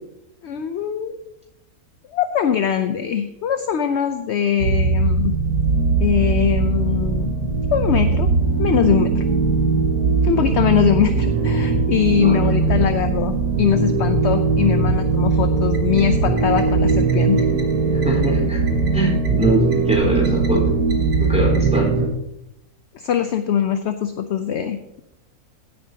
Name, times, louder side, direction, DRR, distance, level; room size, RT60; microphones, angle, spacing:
voice 1, 0.4-1.2 2.1-5.4 6.0-7.3 7.7-8.3 8.6-9.2 10.2-17.5 22.9-25.0, left 8 dB, 60° left, 8 dB, 0.7 m, -22 dB
sound 1, 4.6-22.1, right 3 dB, 80° right, 1.8 m, -19 dB
voice 2, 12.2-12.9 17.9-18.6 18.9-20.7 21.2-21.9, right 1 dB, 5° right, -3 dB, 4.1 m, -23 dB
15.5 x 9.0 x 2.8 m, 0.87 s
omnidirectional pair, 1.6 m